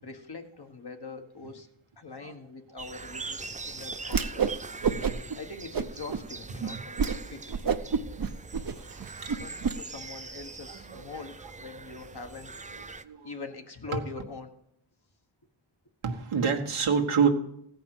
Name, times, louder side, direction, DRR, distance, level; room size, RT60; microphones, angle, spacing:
voice 1, 0.0-1.7 2.0-3.4 3.7-4.6 5.3-7.4 9.3-12.5 13.2-14.5, left 4 dB, 50° left, 5 dB, 1.5 m, -43 dB
sound 1, 2.8-13.0, right 4 dB, 15° right, 0.4 m, -42 dB
Whoosh swoosh swish, 4.0-4.6 4.8-5.4 5.7-6.2 6.6-6.7 7.0-7.2 7.5-9.8, right 6 dB, 45° right, 0.8 m, -28 dB
voice 2, 10.7-11.2 13.0-13.3 13.9-14.0 16.0-17.3, right 6 dB, 90° right, 1 dB, 1.4 m, -27 dB
16.0 x 5.4 x 7.7 m, 0.77 s
cardioid pair, 50°, 49 cm